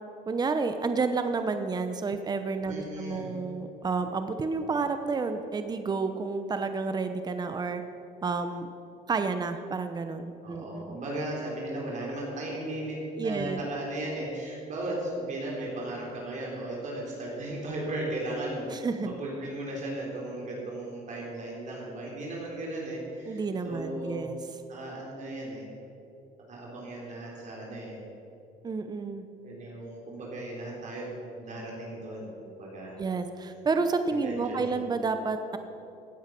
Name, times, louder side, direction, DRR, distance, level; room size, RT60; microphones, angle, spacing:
voice 1, 0.3-7.8 8.2-8.7 9.1-11.0 13.2-13.6 18.7-19.1 23.3-24.4 28.6-29.2 33.0-35.6, right 4 dB, 25° right, 8 dB, 0.8 m, -30 dB
voice 2, 2.7-3.3 10.4-18.7 19.2-24.3 24.7-25.6 26.5-28.0 29.4-31.1 31.3-32.9 34.1-34.8, right 1 dB, 45° right, -3 dB, 3.9 m, -36 dB
16.5 x 9.5 x 6.0 m, 2.8 s
cardioid pair, 110°, 17 cm